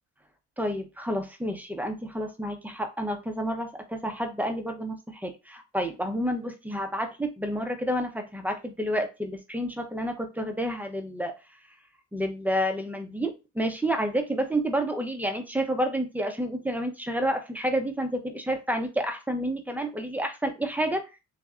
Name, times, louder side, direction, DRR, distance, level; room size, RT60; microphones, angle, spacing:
voice 1, 0.6-11.3 12.1-21.0, equal, 5° right, 5 dB, 0.8 m, -29 dB
3.2 x 2.9 x 3.7 m, 0.27 s
cardioid pair, 90°, 30 cm